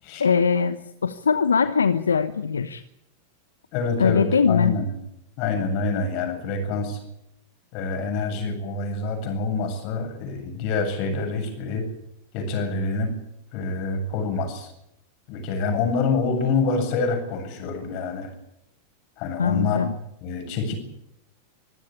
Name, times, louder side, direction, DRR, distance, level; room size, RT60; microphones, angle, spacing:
voice 1, 0.2-2.8 4.0-4.7 19.4-19.9, left 6 dB, 80° left, 12 dB, 1.0 m, -21 dB
voice 2, 3.7-4.9 5.4-7.0 7.7-11.9 12.3-13.1 13.5-14.7 15.3-18.3 19.2-19.9 20.2-20.7, left 4 dB, 50° left, 6 dB, 7.8 m, -26 dB
25.5 x 15.5 x 8.7 m, 0.80 s
figure-of-eight pair, 90°, 0 cm